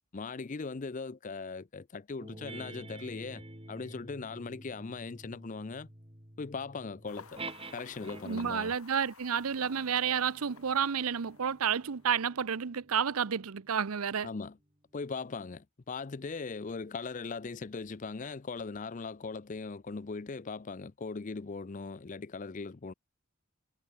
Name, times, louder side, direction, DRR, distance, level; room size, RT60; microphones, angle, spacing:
voice 1, 0.1-5.9 6.4-7.4 7.7-8.8 14.2-14.6 14.9-22.9, left 4 dB, 35° left, 0.5 m, -39 dB
sound 1, 2.2-8.6 9.4-14.3, right 2 dB, 25° right, 3.7 m, -49 dB
sound 2, 7.1-12.1, left 5 dB, 80° left, 2.7 m, -53 dB
voice 2, 8.2-14.3, right 7 dB, 80° right, 0.7 m, -30 dB
head